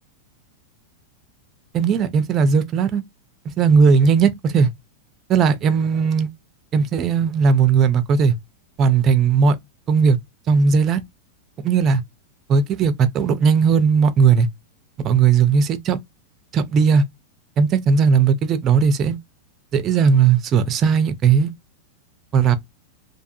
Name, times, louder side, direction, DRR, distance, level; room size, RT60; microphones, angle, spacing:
voice 1, 1.7-3.0 3.6-4.7 5.3-6.3 6.7-8.3 8.8-9.6 9.9-10.2 10.5-11.0 11.6-12.0 12.5-14.5 15.0-16.0 16.5-17.0 17.6-19.2 19.7-21.5 22.3-22.6, right 6 dB, 30° right, 0.4 m, -17 dB
2.6 x 2.4 x 2.6 m
supercardioid pair, 150°, 0 cm